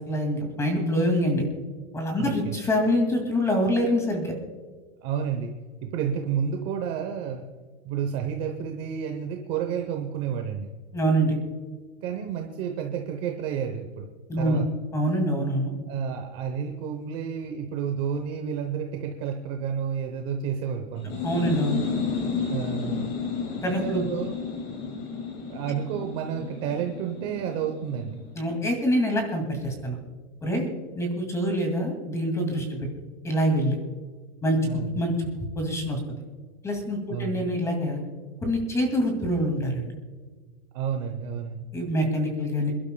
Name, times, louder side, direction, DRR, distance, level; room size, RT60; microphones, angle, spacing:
voice 1, 0.1-1.4 1.9-4.3 10.9-11.4 14.3-14.6 14.9-15.7 21.2-21.8 23.6-24.0 28.4-30.0 30.4-30.7 31.0-32.9 33.2-33.8 34.4-36.0 36.6-38.0 38.4-39.9 41.7-42.7, equal, 10° left, 3 dB, 2.3 m, -25 dB
voice 2, 2.2-2.6 5.0-5.5 5.8-7.5 7.8-10.7 12.0-14.1 14.4-14.7 15.9-21.2 22.5-23.1 23.8-24.3 25.5-28.2 34.6-35.0 37.1-37.5 40.7-41.7, right 7 dB, 25° right, 4 dB, 0.9 m, -30 dB
sound 1, 21.0-28.5, left 5 dB, 30° left, 2.0 m, -32 dB
27.5 x 12.0 x 2.3 m, 1.4 s
supercardioid pair, 175°, 35 cm